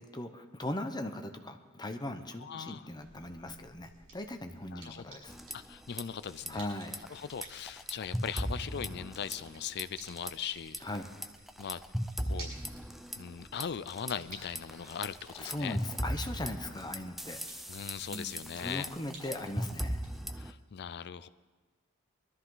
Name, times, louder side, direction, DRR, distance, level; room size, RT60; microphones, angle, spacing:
voice 1, 0.0-5.4 6.5-7.0 10.8-11.1 15.4-17.4 18.1-20.0, left 1 dB, 20° left, 6 dB, 0.9 m, -39 dB
voice 2, 2.4-2.9 4.7-5.0 5.5-6.6 7.1-10.8 11.6-11.8 12.2-12.5 13.1-15.8 17.7-18.9 20.4-21.3, left 7 dB, 50° left, 16 dB, 0.5 m, -39 dB
sound 1, 2.9-20.2, right 2 dB, 75° right, 6.4 m, -55 dB
sound 2, 5.3-6.0 6.3-6.5 6.9-9.5 9.8-10.3 10.7-14.1 14.6-20.5, equal, ahead, 0.6 m, -38 dB
21.5 x 13.0 x 3.9 m, 1.4 s
head